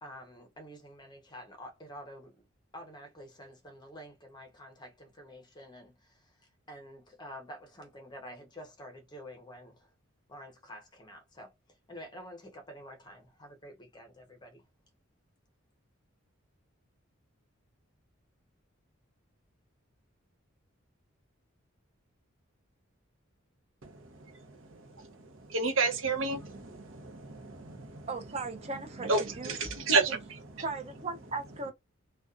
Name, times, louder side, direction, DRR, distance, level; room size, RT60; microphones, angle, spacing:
voice 1, 0.0-2.4 2.7-9.9 10.3-11.5 11.9-14.6, equal, 20° left, 0.6 m, -49 dB
voice 2, 23.8-28.1 29.0-30.6, right 3 dB, 70° right, 0.7 m, -32 dB
voice 3, 28.1-29.6 30.6-31.7, right 3 dB, 30° right, 0.5 m, -37 dB
2.5 x 2.2 x 2.4 m
head